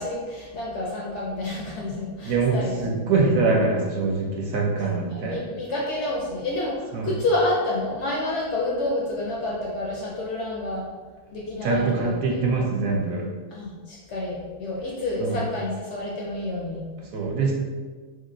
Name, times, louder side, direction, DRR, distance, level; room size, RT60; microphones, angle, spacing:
voice 1, 0.0-3.0 4.8-10.8 11.3-12.1 13.5-16.8, left 2 dB, 65° left, -4 dB, 0.7 m, -29 dB
voice 2, 2.2-5.4 6.9-7.1 11.6-13.2 15.2-15.4 17.1-17.5, right 3 dB, 70° right, -1 dB, 0.9 m, -23 dB
3.0 x 2.8 x 2.5 m, 1.4 s
omnidirectional pair, 1.6 m